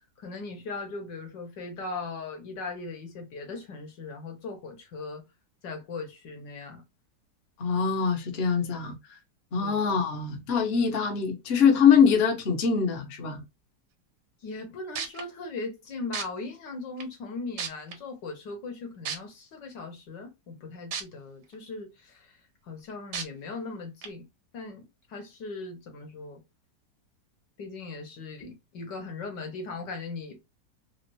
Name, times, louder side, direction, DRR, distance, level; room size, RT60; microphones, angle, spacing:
voice 1, 0.2-5.2 5.6-6.8 9.6-9.8 14.4-22.4 22.6-24.3 24.5-24.8 25.1-26.4 27.6-30.5, left 3 dB, 90° left, 1.8 m, -39 dB
voice 2, 7.6-9.0 9.5-13.4, left 6 dB, 45° left, 0.9 m, -23 dB
sound 1, 14.6-14.7 15.0-15.2 16.1-16.2 17.0-17.1 17.6-17.9 19.1-19.2 20.9-21.0 21.5-21.6 23.1-23.2 24.0-24.1, right 7 dB, 75° right, 1.4 m, -32 dB
4.2 x 2.0 x 2.7 m
omnidirectional pair, 1.8 m